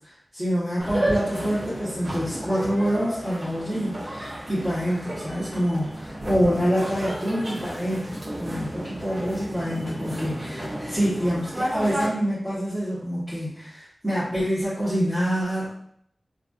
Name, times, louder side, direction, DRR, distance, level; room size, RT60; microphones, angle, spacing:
voice 1, 0.3-15.7, equal, ahead, -13 dB, 1.3 m, -26 dB
sound 1, 0.8-12.1, right 1 dB, 60° right, 0.8 m, -32 dB
3.2 x 2.4 x 2.6 m, 0.66 s
wide cardioid pair, 55°, 0 cm